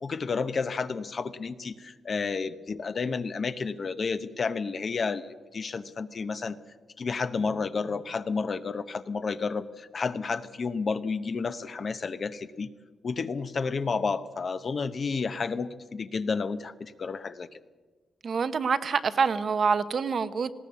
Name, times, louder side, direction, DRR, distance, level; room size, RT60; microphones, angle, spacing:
voice 1, 0.0-6.6 7.0-12.7 13.0-17.5, left 4 dB, 40° left, 11 dB, 0.9 m, -31 dB
voice 2, 18.2-20.5, right 5 dB, 50° right, 11 dB, 0.9 m, -26 dB
19.0 x 17.5 x 8.4 m, 1.4 s
wide cardioid pair, 140°, 0 cm